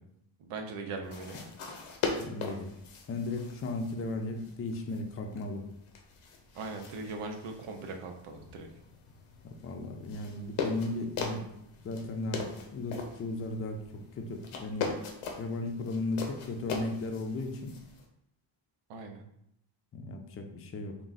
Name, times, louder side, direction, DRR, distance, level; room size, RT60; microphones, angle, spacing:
voice 1, 0.4-1.4 6.6-8.7 18.9-19.2, right 3 dB, 90° right, 4 dB, 0.7 m, -40 dB
sound 1, 1.0-18.1, left 5 dB, 90° left, 0.8 m, -41 dB
voice 2, 2.2-2.7 3.1-5.7 9.6-11.5 11.8-13.8 14.2-14.9 15.4-17.7 19.9-21.0, left 2 dB, 30° left, 3 dB, 0.4 m, -35 dB
3.6 x 2.3 x 4.0 m, 0.76 s
cardioid pair, 115°, 49 cm